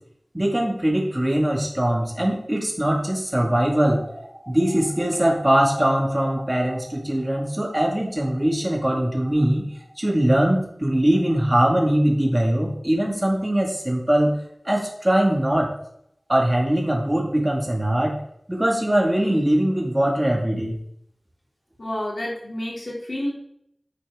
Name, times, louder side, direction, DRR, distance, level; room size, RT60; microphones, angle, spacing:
voice 1, 0.3-9.6 10.0-14.3 14.6-15.7 16.3-18.1 18.5-20.8, right 1 dB, 20° right, -1 dB, 2.1 m, -21 dB
voice 2, 21.8-23.3, left 1 dB, 60° left, -3 dB, 3.0 m, -29 dB
9.8 x 5.8 x 3.7 m, 0.73 s
wide cardioid pair, 40°, 0 cm